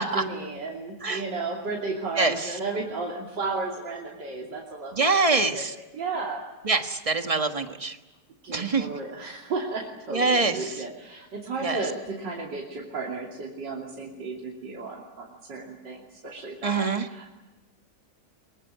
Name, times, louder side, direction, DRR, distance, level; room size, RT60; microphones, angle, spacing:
voice 1, 0.0-5.7 5.9-6.4 8.4-17.3, right 3 dB, 85° right, -3 dB, 3.6 m, -34 dB
voice 2, 4.9-5.7 6.7-7.9 8.5-8.8 10.1-10.6 11.6-11.8 16.6-17.0, right 3 dB, 20° right, 6 dB, 1.4 m, -24 dB
23.5 x 23.5 x 9.3 m, 1.1 s
omnidirectional pair, 1.9 m